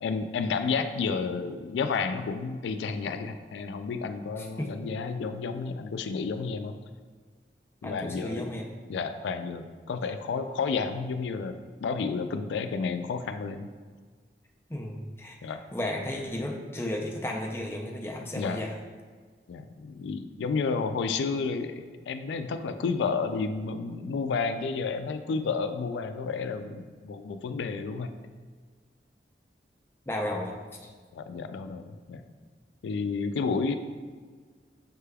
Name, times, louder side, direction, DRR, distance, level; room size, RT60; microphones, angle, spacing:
voice 1, 0.0-6.7 7.8-8.5 8.9-13.7 15.4-15.6 18.4-18.6 19.5-28.1 31.1-32.2 32.8-33.7, left 5 dB, 85° left, 9 dB, 0.3 m, -31 dB
voice 2, 4.4-4.7 7.8-8.7 14.7-18.8 30.1-30.6, left 1 dB, 15° left, 1 dB, 0.4 m, -34 dB
6.5 x 3.3 x 2.2 m, 1.5 s
head